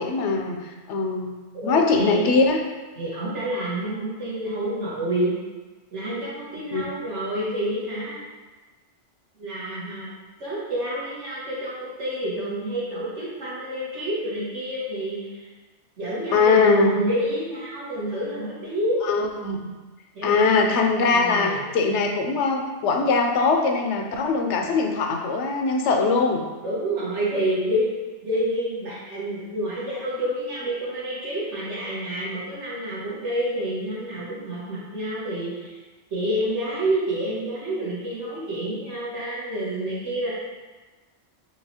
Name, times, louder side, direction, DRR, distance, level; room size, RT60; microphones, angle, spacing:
voice 1, 0.0-2.6 6.7-6.8 16.3-17.0 19.1-19.7 20.2-26.4, left 4 dB, 75° left, 3 dB, 0.9 m, -21 dB
voice 2, 1.5-2.2 3.0-5.3 5.9-8.2 9.4-10.1 10.4-15.5 16.0-19.0 20.1-20.5 21.0-21.7 26.6-27.9 28.2-35.8 36.1-40.3, right 1 dB, 75° right, -8 dB, 1.6 m, -28 dB
4.8 x 2.9 x 2.8 m, 1.3 s
omnidirectional pair, 1.2 m